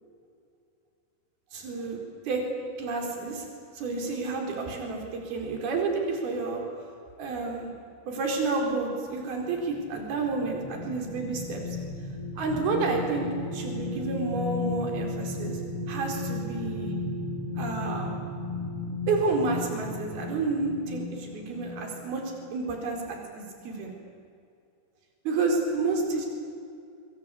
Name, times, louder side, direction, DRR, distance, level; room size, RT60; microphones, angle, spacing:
voice 1, 1.5-2.0 2.3-2.4 2.8-3.5 3.7-6.6 7.2-7.7 8.1-11.6 12.4-15.6 15.9-16.9 17.6-18.1 19.1-22.2 22.5-23.9 25.2-26.3, right 3 dB, 50° right, 1 dB, 6.1 m, -30 dB
sound 1, 9.4-22.4 22.8-23.0, left 3 dB, 45° left, 4.7 m, -35 dB
25.5 x 24.0 x 8.5 m, 2.4 s
omnidirectional pair, 6.0 m